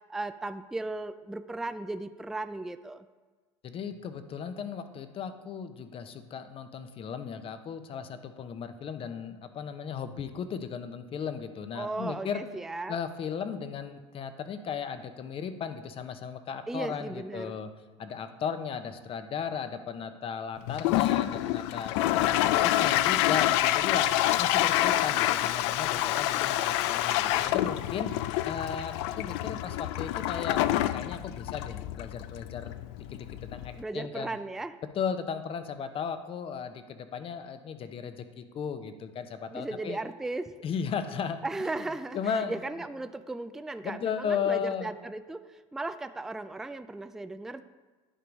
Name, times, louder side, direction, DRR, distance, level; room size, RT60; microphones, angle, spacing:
voice 1, 0.0-3.1 11.7-13.0 16.7-17.6 33.8-34.8 39.5-40.5 41.4-47.6, right 2 dB, 5° right, 11 dB, 0.3 m, -36 dB
voice 2, 3.6-12.4 12.9-17.7 18.0-24.1 24.4-28.1 28.4-32.8 33.1-34.3 34.9-40.0 40.6-41.4 42.1-42.6 43.8-44.9, left 7 dB, 35° left, 10 dB, 0.8 m, -36 dB
Toilet flush, 20.7-33.8, left 14 dB, 70° left, 0.4 m, -27 dB
10.0 x 4.6 x 5.2 m, 1.3 s
hypercardioid pair, 95°, 15 cm